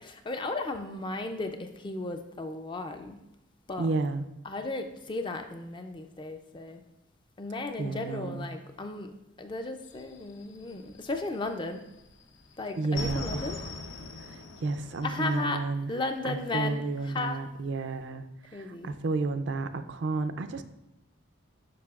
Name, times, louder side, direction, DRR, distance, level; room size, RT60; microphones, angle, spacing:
voice 1, 0.0-3.2 3.7-3.9 4.4-6.8 7.4-11.9 12.6-13.6 15.0-15.6 15.9-17.4 18.5-18.9, left 2 dB, 25° left, 7 dB, 0.3 m, -35 dB
voice 2, 3.8-4.3 7.8-8.5 12.8-13.8 14.2-15.9 16.2-20.6, right 3 dB, 55° right, 10 dB, 0.4 m, -32 dB
sound 1, 9.8-11.6 11.9-15.4, left 2 dB, 70° left, 0.6 m, -40 dB
9.5 x 5.8 x 2.4 m, 0.90 s
head